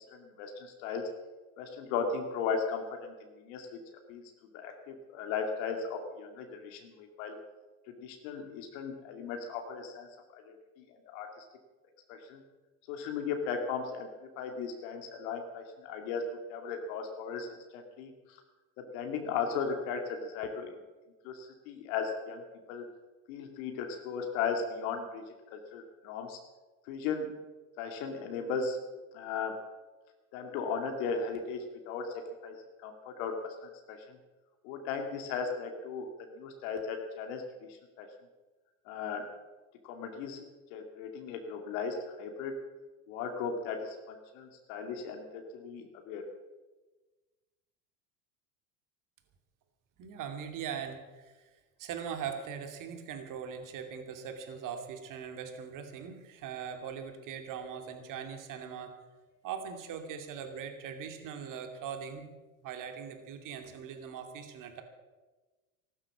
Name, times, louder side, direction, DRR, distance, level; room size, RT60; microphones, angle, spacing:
voice 1, 0.1-1.1 1.6-3.8 4.1-4.2 4.5-7.4 7.9-10.1 10.3-11.4 12.1-12.4 12.9-14.1 14.4-17.5 17.7-18.4 18.8-20.7 21.2-22.4 22.7-22.9 23.3-25.2 25.5-26.4 26.9-27.3 27.8-28.8 29.1-29.6 30.3-32.6 32.8-34.2 34.6-36.1 36.4-37.4 38.0-38.1 38.9-39.3 39.9-40.4 40.7-42.5 43.1-46.2, left 5 dB, 65° left, 4 dB, 2.3 m, -36 dB
voice 2, 50.0-51.5 51.8-58.9 59.4-62.3 62.6-64.8, right 7 dB, 45° right, 6 dB, 2.8 m, -41 dB
15.0 x 12.0 x 7.3 m, 1.2 s
hypercardioid pair, 100°, 42 cm